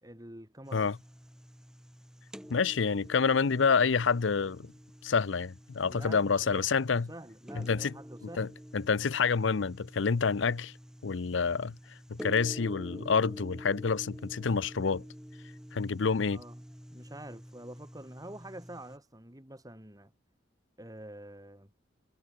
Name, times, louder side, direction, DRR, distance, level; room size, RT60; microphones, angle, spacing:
voice 1, 0.0-0.9 5.8-8.5 16.3-16.6 16.9-20.1 20.8-21.7, right 1 dB, 20° right, 3.8 m, -47 dB
sound 1, 0.6-19.0, equal, 5° right, 2.3 m, -48 dB
voice 2, 2.5-4.7 5.0-7.1 7.5-7.9 8.2-10.7 11.0-11.8 12.1-15.0 15.7-16.4, left 5 dB, 70° left, 0.6 m, -28 dB
head